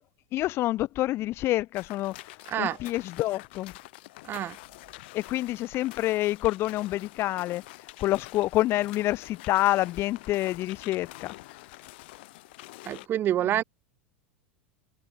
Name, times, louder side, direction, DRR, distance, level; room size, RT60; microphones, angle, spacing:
voice 1, 0.3-2.1 2.6-3.7 5.1-7.6 8.0-11.3, left 16 dB, 45° left, 0.9 m, -27 dB
sound 1, 1.7-13.1, left 21 dB, 65° left, 1.7 m, -47 dB
voice 2, 4.2-4.6 12.9-13.6, right 11 dB, 35° right, 0.7 m, -27 dB
hypercardioid pair, 90°, 6 cm